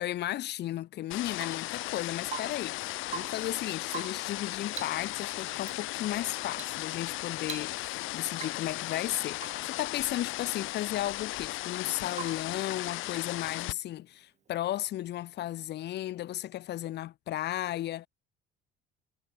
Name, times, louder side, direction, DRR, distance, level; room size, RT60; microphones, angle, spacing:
voice 1, 0.0-18.1, left 13 dB, 55° left, 2.1 m, -34 dB
sound 1, 1.1-13.7, left 19 dB, 75° left, 1.8 m, -36 dB
Rain / Water tap faucet / Drip, 1.3-1.7 2.2-2.7 3.0-3.5 3.9-4.3 4.7-5.1 5.6-5.8 6.5-6.8 7.1-7.2 7.4-8.0 8.3-8.7 9.4-9.7 12.1-12.6 14.5-14.6, right 8 dB, 35° right, 3.3 m, -43 dB
cardioid pair, 150°, 21 cm